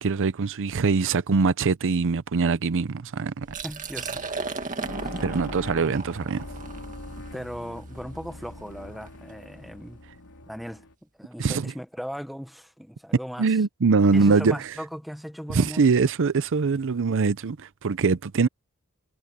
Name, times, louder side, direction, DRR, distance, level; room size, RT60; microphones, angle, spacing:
voice 1, 0.0-3.5 5.2-6.5 11.4-11.7 13.4-14.7 15.5-18.5, right 4 dB, 60° right, 0.6 m, -23 dB
Liquid, 3.4-9.2, right 4 dB, 35° right, 2.0 m, -36 dB
voice 2, 3.6-4.5 5.0-5.1 6.7-6.8 7.2-10.0 10.5-10.8 11.2-13.6 14.1-15.9, equal, ahead, 1.2 m, -38 dB
sound 1, 3.9-10.9, left 1 dB, 85° left, 3.5 m, -42 dB
head